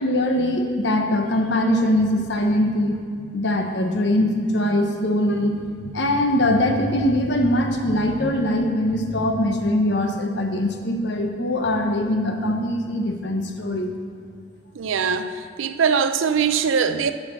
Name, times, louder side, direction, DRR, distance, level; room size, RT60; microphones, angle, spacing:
voice 1, 0.0-3.0 3.3-13.9, left 1 dB, 60° left, 4 dB, 0.9 m, -22 dB
voice 2, 14.8-17.1, right 6 dB, 85° right, 10 dB, 0.5 m, -22 dB
7.5 x 6.5 x 6.4 m, 2.3 s
head